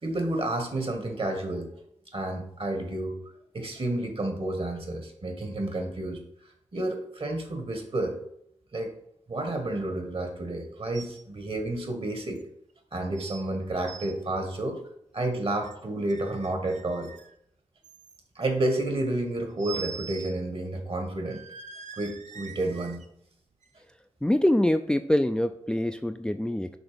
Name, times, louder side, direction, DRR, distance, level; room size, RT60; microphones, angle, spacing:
voice 1, 0.0-1.7 2.1-3.2 3.5-6.2 6.7-8.2 8.7-8.9 9.3-12.4 12.9-14.8 15.1-17.1 18.3-21.4 22.0-23.0, right 1 dB, 50° right, 4 dB, 1.6 m, -30 dB
sound 1, 10.9-11.2 11.5-11.6 12.4-12.5 13.2-13.4 13.7-14.1 15.2-15.8 16.1-17.3 17.8-18.5 19.6-20.4 20.7-20.8 21.2-23.0 23.6-23.7, right 6 dB, 75° right, 0.6 m, -43 dB
voice 2, 24.2-26.8, left 1 dB, 5° left, 8 dB, 0.4 m, -24 dB
6.1 x 3.4 x 5.1 m, 0.72 s
supercardioid pair, 45°, 12 cm